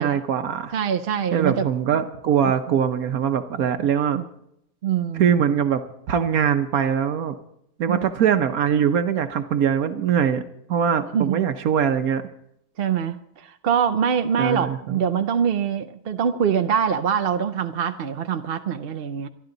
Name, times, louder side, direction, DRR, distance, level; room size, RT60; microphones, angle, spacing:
voice 1, 0.0-0.7 1.3-4.2 5.2-5.8 6.1-7.4 7.8-10.4 10.7-12.2 14.4-15.0, right 8 dB, 75° right, 8 dB, 1.2 m, -22 dB
voice 2, 0.7-2.1 4.1-4.3 4.8-5.3 7.9-8.1 11.1-11.4 12.8-19.3, right 7 dB, 55° right, 8 dB, 0.7 m, -24 dB
26.5 x 11.0 x 3.9 m, 0.76 s
omnidirectional pair, 1.5 m